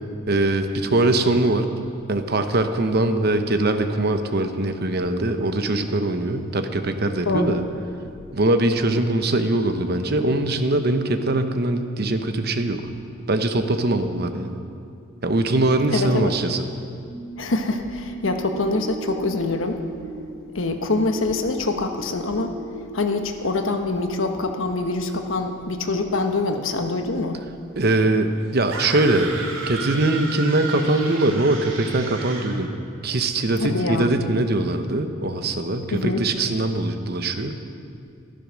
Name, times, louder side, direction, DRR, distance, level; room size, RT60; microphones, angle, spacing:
voice 1, 0.3-1.7 2.1-7.6 8.3-12.8 13.3-14.6 15.2-16.6 27.8-29.3 29.7-32.7 33.0-37.5, right 2 dB, 50° right, 8 dB, 0.9 m, -22 dB
voice 2, 7.2-7.6 15.9-16.3 17.4-19.8 20.5-22.5 22.9-27.4 33.6-34.2 35.9-36.2, left 3 dB, 80° left, 5 dB, 1.2 m, -25 dB
sound 1, 17.1-24.4 24.9-25.0, equal, 5° right, 4.9 m, -38 dB
sound 2, 28.7-32.6, right 3 dB, 85° right, 2.9 m, -33 dB
14.0 x 13.0 x 6.2 m, 2.4 s
head